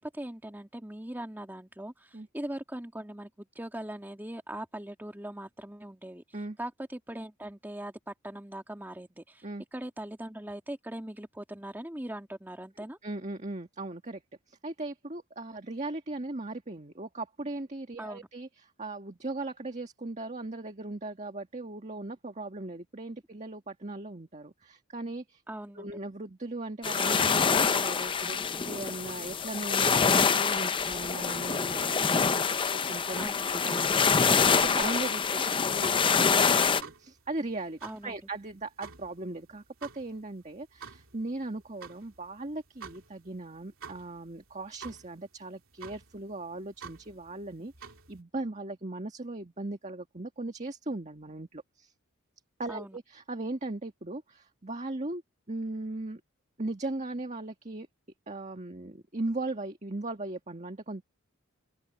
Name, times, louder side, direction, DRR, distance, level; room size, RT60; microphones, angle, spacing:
voice 1, 0.0-6.2 6.6-9.5 9.7-13.0 18.0-18.3 25.5-26.0 33.2-33.5 37.8-38.2 52.7-53.0, right 1 dB, 10° right, 1.8 m, -40 dB
voice 2, 13.0-14.2 14.5-25.4 25.8-33.3 33.5-51.9 52.6-55.2 55.5-56.2 56.6-57.9 58.3-61.0, right 2 dB, 35° right, 1.7 m, -38 dB
sound 1, 26.8-36.8, left 5 dB, 25° left, 0.5 m, -26 dB
sound 2, 34.8-48.2, right 6 dB, 65° right, 3.5 m, -50 dB
open air
head